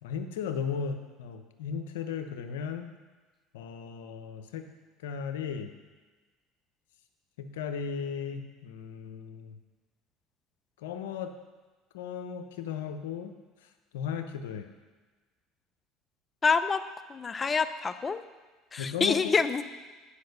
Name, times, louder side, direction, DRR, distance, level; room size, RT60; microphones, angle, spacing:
voice 1, 0.0-2.9 3.5-4.7 5.0-5.7 7.4-9.6 10.8-11.3 11.9-13.3 13.9-14.7 18.8-19.2, left 7 dB, 85° left, 7 dB, 0.8 m, -36 dB
voice 2, 16.4-16.8 17.1-18.2 18.7-19.6, left 5 dB, 25° left, 12 dB, 0.6 m, -26 dB
10.0 x 5.3 x 6.7 m, 1.3 s
supercardioid pair, 90°, 0 cm